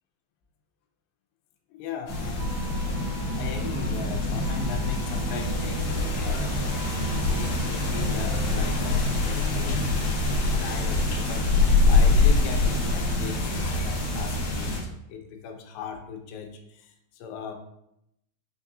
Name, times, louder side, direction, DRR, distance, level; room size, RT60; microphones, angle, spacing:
voice 1, 1.7-3.0 3.4-6.4 7.0-10.2 10.5-17.5, left 7 dB, 80° left, 4 dB, 2.2 m, -39 dB
sound 1, 2.1-14.8, left 2 dB, 65° left, 1.6 m, -25 dB
sound 2, 2.4-9.1 9.3-9.5, right 4 dB, 85° right, 1.8 m, -42 dB
5.8 x 2.4 x 2.6 m, 0.79 s
omnidirectional pair, 4.2 m